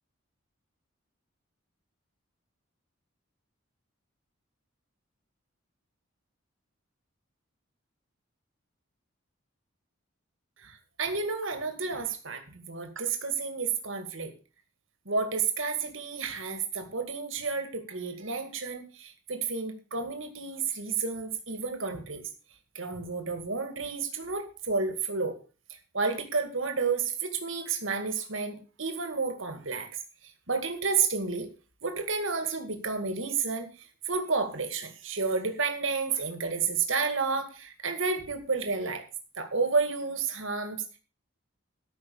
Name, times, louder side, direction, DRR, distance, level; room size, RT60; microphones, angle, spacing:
voice 1, 10.6-14.3 15.1-22.2 22.7-25.4 25.9-29.9 30.5-31.5 31.8-33.7 34.1-39.0 39.4-40.8, right 4 dB, 70° right, 6 dB, 2.2 m, -31 dB
13.5 x 5.9 x 7.1 m, 0.35 s
head